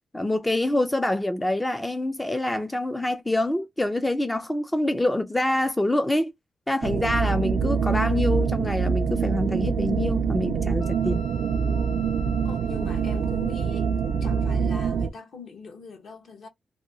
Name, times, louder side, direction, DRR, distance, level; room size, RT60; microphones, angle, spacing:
voice 1, 0.1-6.3 6.7-11.3, left 1 dB, 10° left, 0.3 m, -26 dB
sound 1, 6.8-15.1, right 6 dB, 80° right, 0.3 m, -25 dB
Wind instrument woodwind instrument, 10.8-14.5, left 6 dB, 75° left, 0.5 m, -46 dB
voice 2, 12.4-16.5, left 4 dB, 55° left, 0.9 m, -42 dB
2.7 x 2.6 x 2.6 m
wide cardioid pair, 150°, 0 cm